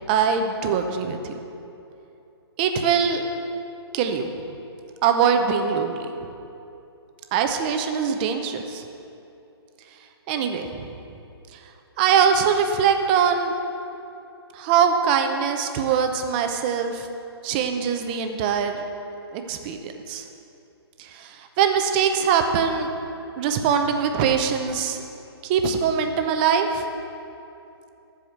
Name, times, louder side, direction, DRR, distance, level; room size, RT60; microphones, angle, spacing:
voice 1, 0.1-1.3 2.6-3.3 3.9-4.3 5.0-6.3 7.3-8.8 10.3-10.9 12.0-13.5 14.5-17.1 17.4-18.8 19.3-20.2 21.0-22.9 23.4-25.0 25.4-26.8, right 7 dB, 20° right, 6 dB, 0.6 m, -22 dB
13.0 x 4.9 x 7.9 m, 2.8 s
hypercardioid pair, 155°, 14 cm